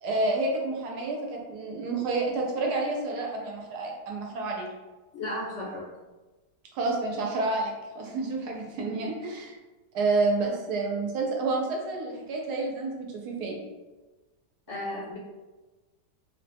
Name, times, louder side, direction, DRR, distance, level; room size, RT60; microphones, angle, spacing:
voice 1, 0.0-4.7 6.7-9.5 9.9-13.6, right 3 dB, 80° right, 0 dB, 1.2 m, -29 dB
voice 2, 5.1-5.8 14.7-15.2, left 1 dB, 65° left, -4 dB, 0.7 m, -34 dB
3.4 x 2.1 x 2.7 m, 1.2 s
omnidirectional pair, 1.7 m